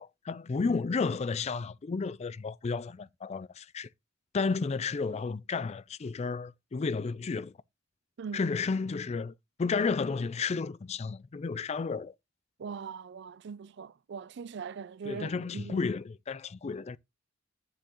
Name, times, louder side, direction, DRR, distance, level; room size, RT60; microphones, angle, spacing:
voice 1, 0.0-3.9 4.3-7.5 8.3-9.3 9.6-12.1 15.0-17.0, left 4 dB, 35° left, 0.4 m, -32 dB
voice 2, 8.2-8.5 12.6-15.9, right 6 dB, 60° right, 0.4 m, -41 dB
9.4 x 7.0 x 3.0 m
head